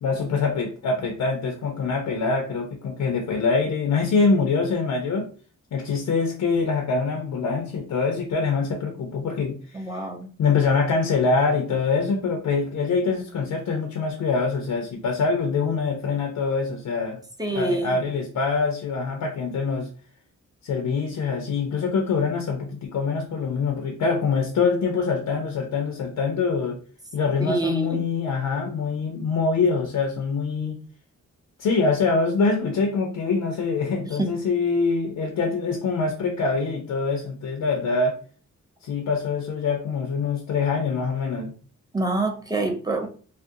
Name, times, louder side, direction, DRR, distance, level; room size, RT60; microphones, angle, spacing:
voice 1, 0.0-5.3 5.7-9.8 10.4-17.2 17.5-19.9 20.6-26.8 27.1-30.8 31.6-38.1 38.8-41.5, left 4 dB, 70° left, 3 dB, 0.5 m, -24 dB
voice 2, 9.7-10.3 17.4-18.0 27.4-28.0 34.2-34.3 41.9-43.1, right 2 dB, 15° right, 3 dB, 0.5 m, -26 dB
2.4 x 2.1 x 2.6 m, 0.41 s
cardioid pair, 75°, 31 cm